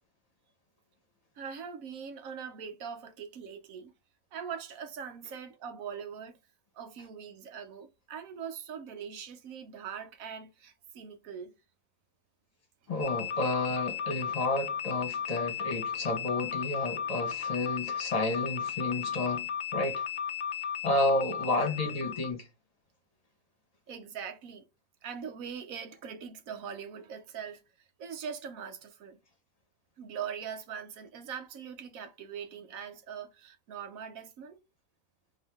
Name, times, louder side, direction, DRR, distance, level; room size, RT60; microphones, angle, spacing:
voice 1, 1.4-3.9 4.3-6.4 6.7-11.5 23.9-24.6 25.0-27.6 28.0-29.2 30.0-34.6, right 7 dB, 70° right, 1.2 m, -42 dB
voice 2, 12.9-20.0 20.8-22.5, left 2 dB, 30° left, 1.2 m, -31 dB
sound 1, 13.0-22.3, left 8 dB, 70° left, 0.4 m, -35 dB
4.6 x 2.8 x 3.5 m
omnidirectional pair, 1.5 m